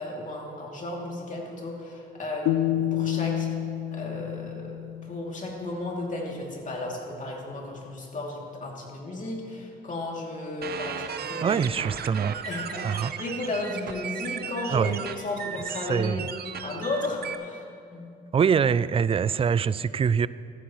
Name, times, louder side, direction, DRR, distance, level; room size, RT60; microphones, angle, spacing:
voice 1, 0.0-3.5 3.9-4.7 5.0-11.6 12.4-14.9 15.2-16.3 16.6-17.6 17.9-18.0, left 2 dB, 40° left, -2 dB, 2.7 m, -34 dB
sound 1, 2.5-5.6, left 11 dB, 85° left, 0.5 m, -29 dB
sound 2, 10.6-17.4, right 7 dB, 50° right, 0.7 m, -36 dB
voice 2, 11.4-12.4 12.8-13.1 14.7-15.0 15.8-16.3 18.3-20.3, right 6 dB, 30° right, 17 dB, 0.3 m, -24 dB
14.0 x 14.0 x 3.1 m, 2.4 s
cardioid pair, 90°, 20 cm